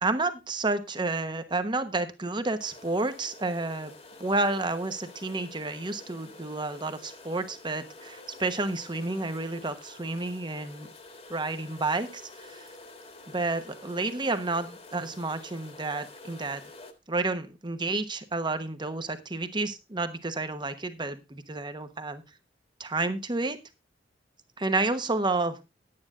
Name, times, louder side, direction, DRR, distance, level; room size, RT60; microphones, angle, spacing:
voice 1, 0.0-3.9 4.2-10.9 11.3-12.7 13.3-16.6 17.1-22.2 22.8-23.6 24.6-25.6, right 2 dB, 25° right, 10 dB, 1.1 m, -30 dB
sound 1, 2.6-16.9, left 2 dB, 35° left, 1.6 m, -48 dB
10.5 x 9.7 x 3.7 m, 0.25 s
head